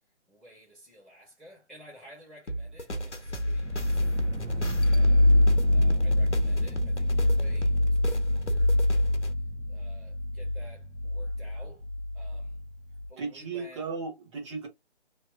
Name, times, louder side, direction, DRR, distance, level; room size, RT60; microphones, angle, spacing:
voice 1, 0.3-5.3 5.7-9.1 9.7-11.8 12.1-12.6 13.1-13.8, equal, ahead, 1.0 m, -53 dB
sound 1, 2.5-9.3, right 1 dB, 90° left, 1.1 m, -36 dB
sound 2, 3.2-13.1, left 1 dB, 90° right, 1.0 m, -25 dB
voice 2, 13.2-14.7, right 4 dB, 25° right, 1.3 m, -35 dB
3.2 x 2.8 x 3.5 m
figure-of-eight pair, 145°, 34 cm